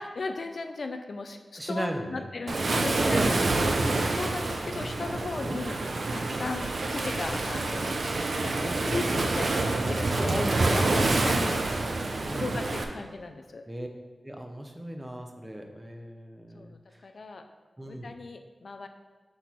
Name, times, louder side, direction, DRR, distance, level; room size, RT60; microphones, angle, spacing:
voice 1, 0.0-3.2 3.9-5.8 6.1-8.0 8.4-11.6 12.3-13.6 16.5-17.4 17.8-18.9, left 3 dB, 65° left, 6 dB, 0.4 m, -37 dB
voice 2, 1.6-2.3 2.7-3.5 5.4-5.6 6.3-6.5 8.5-9.2 10.2-11.9 12.2-12.5 13.7-13.9 14.2-17.0 17.8-18.1, equal, 15° right, 3 dB, 0.7 m, -36 dB
Waves surf, 2.5-12.8, right 2 dB, 65° right, 0.5 m, -27 dB
5.9 x 4.2 x 4.5 m, 1.4 s
wide cardioid pair, 100°, 0 cm